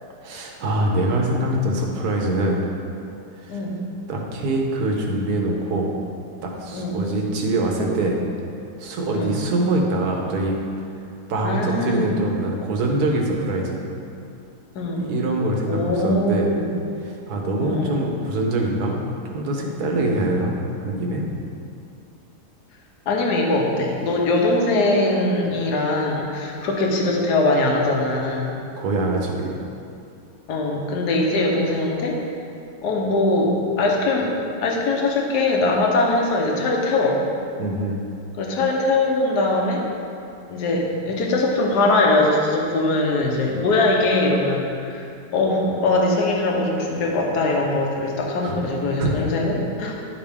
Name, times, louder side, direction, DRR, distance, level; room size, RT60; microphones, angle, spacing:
voice 1, 0.2-2.6 3.4-3.6 4.1-5.9 6.4-8.2 8.8-10.6 11.3-13.8 15.0-16.5 17.0-19.0 19.3-20.6 20.8-21.3 28.8-29.6 37.6-38.0 48.4-48.5 49.0-49.1, right 2 dB, 70° right, 0 dB, 1.4 m, -24 dB
voice 2, 3.5-3.9 6.7-7.1 9.1-9.3 11.4-12.1 14.7-15.1 15.7-16.7 17.6-18.0 23.1-28.5 30.5-32.2 32.8-34.3 34.6-37.2 38.4-39.8 40.5-45.0 45.3-49.9, left 2 dB, 75° left, -1 dB, 1.5 m, -21 dB
11.0 x 5.1 x 3.5 m, 2.6 s
omnidirectional pair, 1.8 m